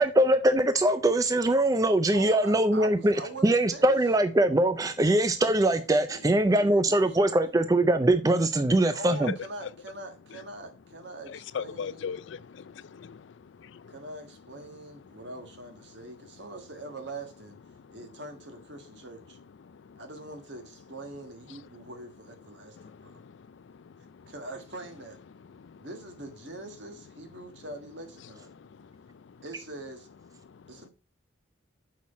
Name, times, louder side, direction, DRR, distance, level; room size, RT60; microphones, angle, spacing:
voice 1, 0.0-3.2 3.4-9.3, right 1 dB, 20° right, 0.4 m, -22 dB
voice 2, 2.1-4.0 6.1-7.4 8.9-12.1 13.9-17.6 17.9-19.4 20.0-23.1 24.3-25.2 25.8-28.5 29.4-30.1 30.7-30.9, right 2 dB, 65° right, 1.5 m, -43 dB
voice 3, 11.3-14.0 17.7-18.0 19.6-20.0 22.8-24.3 25.5-25.9 28.5-29.4 30.5-30.6, left 6 dB, 70° left, 0.4 m, -41 dB
6.4 x 5.6 x 4.1 m
head